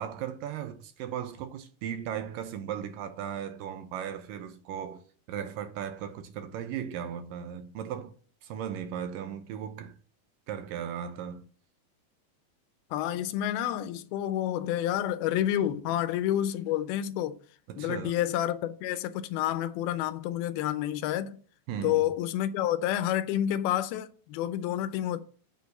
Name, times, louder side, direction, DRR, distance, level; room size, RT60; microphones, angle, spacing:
voice 1, 0.0-5.0 5.3-8.1 8.4-10.0 10.5-11.5 17.7-18.1 21.7-22.0, right 9 dB, 75° right, 2.2 m, -37 dB
voice 2, 12.9-17.4 17.8-21.4 21.8-25.2, left 12 dB, 85° left, 2.6 m, -29 dB
7.6 x 6.4 x 5.3 m
omnidirectional pair, 4.3 m